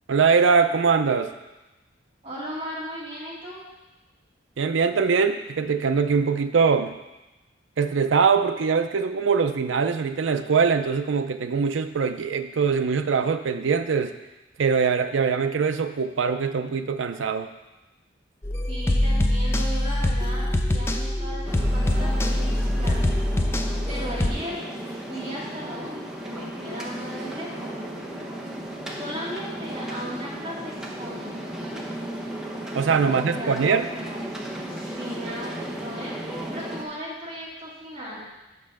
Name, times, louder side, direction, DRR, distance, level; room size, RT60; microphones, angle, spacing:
voice 1, 0.1-1.3 4.6-6.9 7.8-14.1 14.6-17.5 32.7-33.9, right 5 dB, 80° right, 9 dB, 0.5 m, -22 dB
voice 2, 2.2-3.6 18.7-27.8 29.0-31.5 33.1-34.4 34.7-38.3, equal, 30° right, -6 dB, 2.0 m, -37 dB
sound 1, 18.4-24.3, left 1 dB, 15° left, 0.4 m, -24 dB
sound 2, 21.4-36.8, right 1 dB, 5° right, 0.8 m, -35 dB
5.6 x 5.4 x 6.5 m, 1.0 s
head